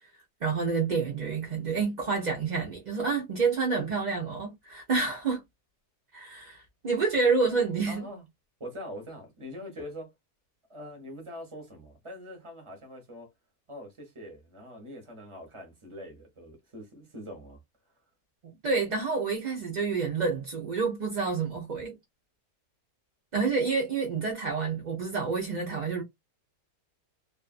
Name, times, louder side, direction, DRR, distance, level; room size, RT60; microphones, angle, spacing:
voice 1, 0.4-5.4 6.1-8.0 18.4-22.0 23.3-26.0, right 4 dB, 50° right, 0.5 m, -28 dB
voice 2, 7.9-8.2 8.6-10.1 10.7-13.3 13.7-17.6, equal, 25° right, 0.8 m, -43 dB
2.6 x 2.5 x 2.4 m
omnidirectional pair, 1.6 m